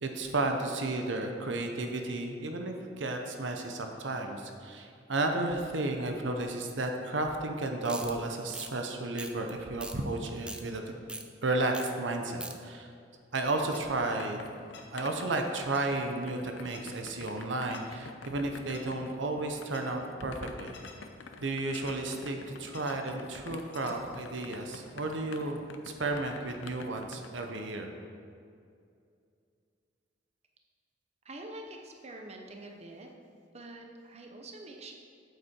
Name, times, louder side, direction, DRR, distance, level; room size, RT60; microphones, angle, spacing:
voice 1, 0.0-10.8 11.4-12.9 13.3-14.4 14.9-20.7 21.4-25.6 26.0-27.9, right 2 dB, 75° right, 4 dB, 0.8 m, -33 dB
sound 1, 7.9-8.1 8.5-8.7 9.2-9.5 9.8-10.0 10.3-10.6 11.1-11.2 11.7-11.9 12.2-12.5, right 2 dB, 5° right, 0.5 m, -40 dB
sound 2, 13.7-13.8 14.7-14.8 15.7-15.8 16.7-16.8 17.7-17.8 18.7-18.8 19.7-19.8 20.7-20.9 21.7-21.9 22.7-22.9 23.7-23.9, left 6 dB, 65° left, 1.2 m, -48 dB
sound 3, 14.0-27.6, left 4 dB, 85° left, 0.7 m, -49 dB
voice 2, 31.2-33.1 33.5-34.9, right 2 dB, 35° right, 2 dB, 0.8 m, -45 dB
8.3 x 8.2 x 4.5 m, 2.4 s
head